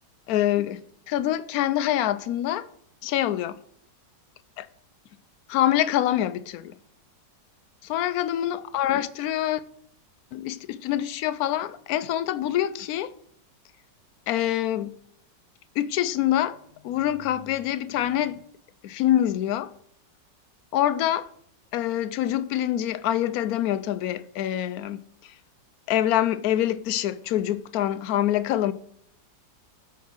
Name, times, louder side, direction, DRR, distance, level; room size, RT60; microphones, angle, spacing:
voice 1, 0.3-0.8 1.1-2.7 3.0-3.6 4.6-4.7 5.5-6.7 7.8-9.6 10.3-13.1 14.3-14.9 15.8-18.4 18.8-19.7 20.7-21.3 21.7-25.3 25.9-28.7, left 12 dB, 70° left, 0.9 m, -25 dB
13.0 x 4.6 x 6.3 m
omnidirectional pair, 1.9 m